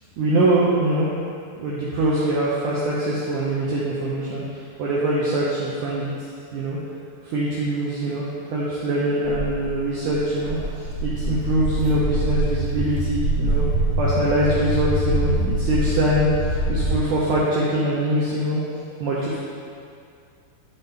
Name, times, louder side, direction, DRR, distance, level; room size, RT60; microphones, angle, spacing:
voice 1, 0.2-1.1 1.6-6.1 6.5-6.8 7.2-8.3 8.5-13.6 14.0-18.6 19.0-19.4, right 1 dB, 85° right, -6 dB, 1.7 m, -23 dB
Walk footsteps, 9.2-16.9, right 1 dB, 90° left, 0.6 m, -24 dB
11.0 x 4.2 x 3.5 m, 2.4 s
omnidirectional pair, 4.8 m